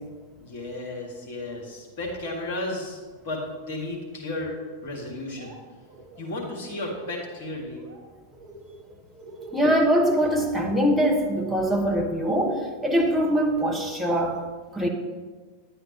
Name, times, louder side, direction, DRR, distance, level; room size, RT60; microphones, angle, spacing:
voice 1, 0.4-3.0 3.2-5.6 6.2-7.8, left 2 dB, 50° left, -1 dB, 2.0 m, -33 dB
Laughter, 5.1-5.6 5.9-7.3 7.6-8.0 8.3-11.2, right 3 dB, 40° right, 2.1 m, -45 dB
voice 2, 9.5-14.4 14.7-14.9, equal, ahead, -1 dB, 1.2 m, -23 dB
10.0 x 8.0 x 3.1 m, 1.4 s
figure-of-eight pair, 90°, 0 cm